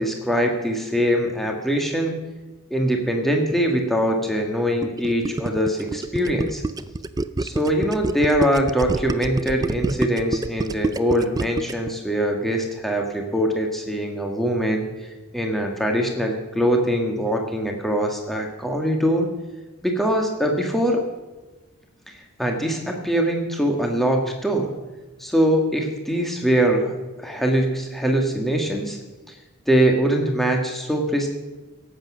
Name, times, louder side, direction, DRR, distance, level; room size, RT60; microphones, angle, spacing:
voice 1, 0.0-2.2 2.7-6.6 7.4-14.9 15.3-19.3 19.8-21.0 22.1-22.2 22.4-24.7 25.2-26.9 27.2-29.0 29.7-31.3, equal, ahead, 1 dB, 1.6 m, -22 dB
Gurgling, 4.8-11.9, right 2 dB, 15° right, 0.3 m, -27 dB
17.0 x 8.2 x 6.1 m, 1.2 s
head